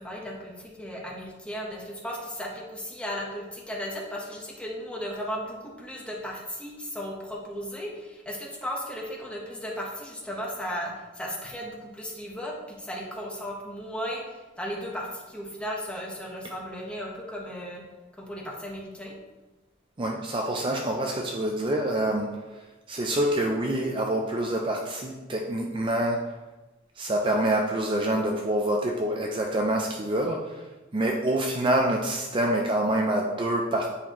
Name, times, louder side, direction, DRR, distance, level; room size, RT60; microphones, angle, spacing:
voice 1, 0.0-17.8 18.1-19.1, equal, 5° left, -2 dB, 1.0 m, -35 dB
voice 2, 20.0-22.4 22.9-26.3 27.0-30.6 30.9-33.9, right 1 dB, 25° right, 1 dB, 0.5 m, -26 dB
8.4 x 4.2 x 3.0 m, 1.2 s
head